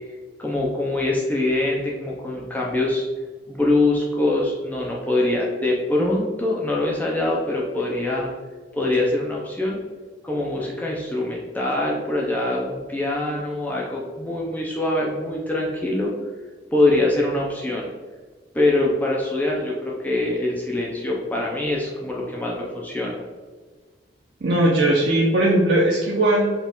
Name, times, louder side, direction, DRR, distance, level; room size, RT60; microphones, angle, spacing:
voice 1, 0.4-3.0 3.5-8.3 8.7-9.8 10.2-16.1 16.7-17.8 18.5-23.2, left 2 dB, 10° left, -3 dB, 0.4 m, -23 dB
voice 2, 24.4-26.5, right 1 dB, 65° right, -4 dB, 0.6 m, -19 dB
4.3 x 2.3 x 3.6 m, 1.4 s
head